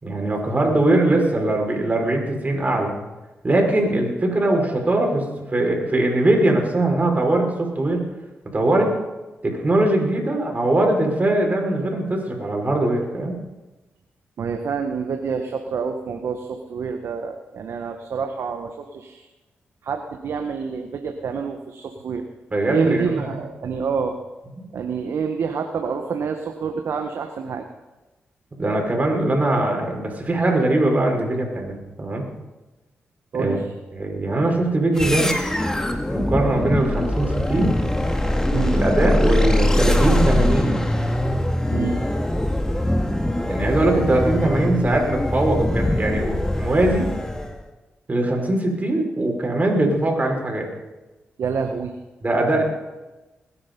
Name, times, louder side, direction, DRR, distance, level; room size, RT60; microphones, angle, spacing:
voice 1, 0.0-2.9 3.4-8.0 8.5-8.9 9.4-13.4 22.5-23.3 28.6-32.2 33.3-33.6 33.9-35.5 36.1-37.8 38.7-40.8 43.5-47.1 48.1-50.7 52.2-52.6, right 2 dB, 35° right, 1 dB, 5.4 m, -21 dB
voice 2, 14.4-19.3 19.8-22.2 22.7-24.2 24.7-27.6 33.3-33.6 38.5-38.8 41.7-42.0 51.4-51.9, right 5 dB, 75° right, 4 dB, 1.3 m, -27 dB
sound 1, 34.9-47.6, left 1 dB, 10° left, 2.2 m, -22 dB
21.0 x 10.5 x 5.4 m, 1.1 s
supercardioid pair, 50°, 5 cm